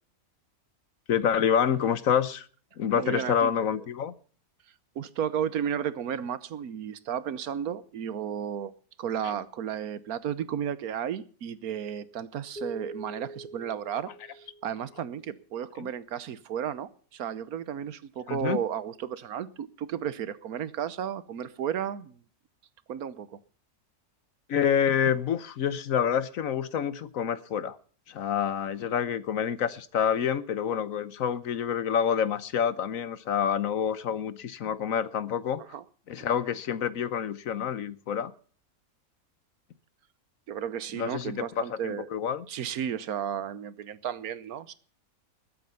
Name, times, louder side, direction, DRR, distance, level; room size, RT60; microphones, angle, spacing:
voice 1, 1.1-2.5 2.8-4.1 9.2-9.4 15.8-15.9 18.3-18.6 24.5-27.8 28.1-35.6 36.1-38.3 40.9-42.4, left 8 dB, 65° left, 1.3 m, -27 dB
voice 2, 2.9-3.8 4.9-8.7 9.0-22.2 22.9-23.4 35.6-35.8 40.5-42.1 42.5-44.7, right 9 dB, 80° right, 1.4 m, -33 dB
sound 1, 12.6-15.1, right 1 dB, 5° left, 2.5 m, -43 dB
20.5 x 8.5 x 5.6 m
omnidirectional pair, 1.5 m